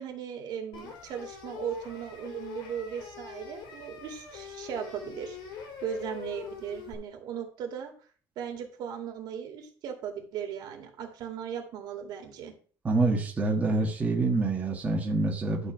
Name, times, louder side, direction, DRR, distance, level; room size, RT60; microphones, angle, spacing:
voice 1, 0.0-5.4 5.8-7.9 8.4-12.5, right 8 dB, 60° right, 3 dB, 2.4 m, -37 dB
sound 1, 0.7-6.9, left 7 dB, 80° left, 3.9 m, -43 dB
voice 2, 12.8-15.7, right 3 dB, 15° right, -1 dB, 1.5 m, -26 dB
12.0 x 4.5 x 5.9 m, 0.42 s
cardioid pair, 175°, 8 cm